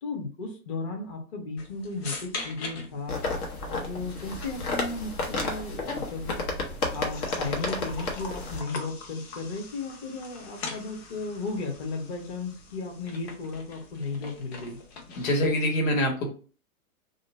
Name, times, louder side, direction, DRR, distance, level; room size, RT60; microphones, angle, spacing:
voice 1, 0.0-3.2 3.6-6.4 6.9-14.8, left 3 dB, 25° left, 2 dB, 0.4 m, -35 dB
sound 1, 1.6-15.6, left 3 dB, 45° left, 0.8 m, -43 dB
sound 2, 3.1-8.6, left 2 dB, 85° left, 1.1 m, -32 dB
voice 2, 15.2-16.3, left 1 dB, 65° left, 1 dB, 1.3 m, -24 dB
2.5 x 2.2 x 3.8 m, 0.38 s
hypercardioid pair, 150°, 43 cm